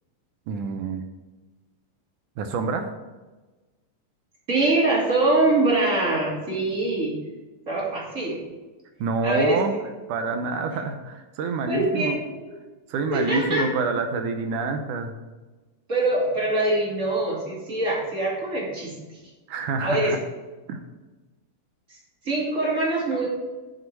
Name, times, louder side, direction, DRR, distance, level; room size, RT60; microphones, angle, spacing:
voice 1, 0.5-1.0 2.4-2.9 9.0-9.7 10.1-12.2 12.9-15.1 19.5-20.2 20.7-20.8, right 4 dB, 75° right, 6 dB, 2.2 m, -27 dB
voice 2, 4.5-7.1 7.7-8.4 9.2-9.6 11.7-12.5 13.1-13.7 15.9-18.9 19.8-20.1 22.2-23.3, right 2 dB, 25° right, -4 dB, 2.6 m, -23 dB
9.6 x 6.4 x 4.7 m, 1.2 s
omnidirectional pair, 3.9 m